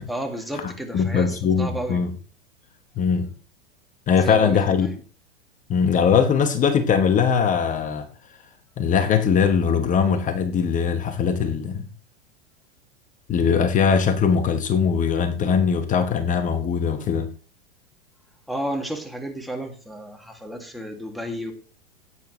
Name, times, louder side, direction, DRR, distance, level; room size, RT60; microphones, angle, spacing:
voice 1, 0.1-2.1 4.2-4.9 18.5-21.5, right 1 dB, ahead, 2.3 m, -32 dB
voice 2, 0.9-2.1 3.0-3.3 4.1-4.9 5.7-8.1 8.8-11.9 13.3-17.3, left 6 dB, 25° left, 1.3 m, -21 dB
16.5 x 9.2 x 3.2 m
figure-of-eight pair, 90°, 31 cm